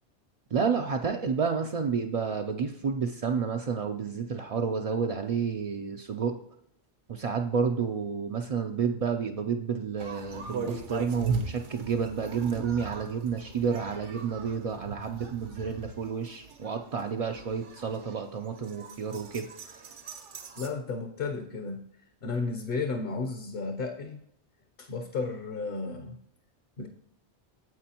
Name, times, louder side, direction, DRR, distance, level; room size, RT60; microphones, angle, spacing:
voice 1, 0.5-6.4 7.1-19.8, right 6 dB, 60° right, 3 dB, 0.3 m, -30 dB
sound 1, 10.0-20.7, right 5 dB, 85° right, 1.2 m, -39 dB
voice 2, 20.6-21.8 22.2-24.2 24.8-26.2 26.8-26.9, left 4 dB, 55° left, 4 dB, 0.9 m, -33 dB
9.3 x 7.6 x 2.9 m, 0.75 s
omnidirectional pair, 1.2 m